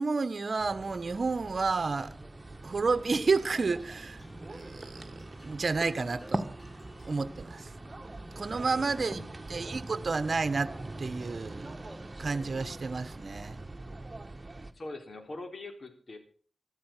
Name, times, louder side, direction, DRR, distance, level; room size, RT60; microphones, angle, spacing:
voice 1, 0.0-2.1 2.6-6.5 7.1-7.7 8.4-9.2 9.5-11.8 12.2-13.6, right 4 dB, 60° right, 1.1 m, -31 dB
sound 1, 0.6-14.7, right 2 dB, 30° right, 1.7 m, -42 dB
sound 2, 3.8-8.9, left 1 dB, 30° left, 1.9 m, -55 dB
voice 2, 8.5-9.5 14.7-16.2, left 2 dB, 55° left, 3.9 m, -44 dB
13.5 x 13.5 x 5.9 m
cardioid pair, 50°, 0 cm